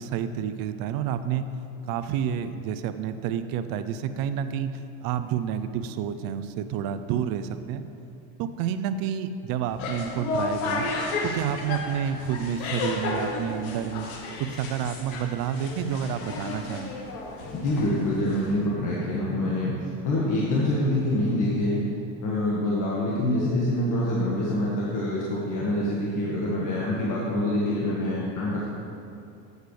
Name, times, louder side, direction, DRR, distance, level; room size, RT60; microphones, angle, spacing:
voice 1, 0.0-1.5 1.9-4.7 5.0-7.8 8.4-10.9 11.2-14.1 14.4-16.9, right 8 dB, 55° right, 11 dB, 0.5 m, -29 dB
sound 1, 9.6-18.7, left 3 dB, 80° left, 1.2 m, -33 dB
voice 2, 17.5-19.7 20.0-21.8 22.2-28.7, left 1 dB, 45° left, -6 dB, 1.5 m, -26 dB
8.1 x 8.0 x 3.2 m, 2.6 s
supercardioid pair, 95°, 42 cm